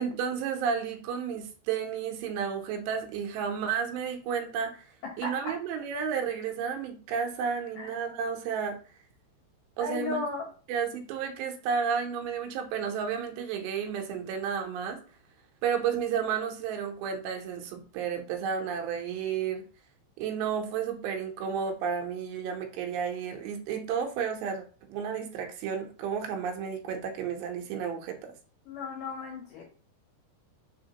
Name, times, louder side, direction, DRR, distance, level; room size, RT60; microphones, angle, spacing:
voice 1, 0.0-4.9 5.2-8.8 9.8-10.2 10.7-15.0 15.6-19.6 20.2-24.6 24.9-28.3, right 7 dB, 85° right, 3 dB, 2.9 m, -32 dB
voice 2, 5.0-5.5 7.8-7.9 9.8-10.5 28.7-29.6, left 3 dB, 70° left, -1 dB, 2.8 m, -35 dB
6.3 x 2.9 x 2.8 m, 0.38 s
omnidirectional pair, 4.9 m